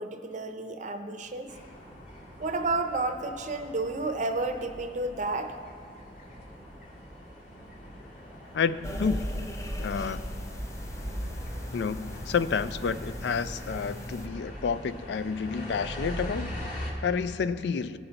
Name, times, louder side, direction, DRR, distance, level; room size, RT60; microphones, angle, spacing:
voice 1, 0.0-1.5 2.4-5.6, right 2 dB, 45° right, 6 dB, 0.6 m, -31 dB
sound 1, 1.5-16.9, equal, 45° left, 2.1 m, -42 dB
voice 2, 8.5-9.3 9.8-10.2 11.7-18.0, left 5 dB, 70° left, 14 dB, 0.4 m, -30 dB
sound 2, 8.8-14.3, equal, 15° left, 0.5 m, -37 dB
17.0 x 5.6 x 3.9 m, 2.5 s
head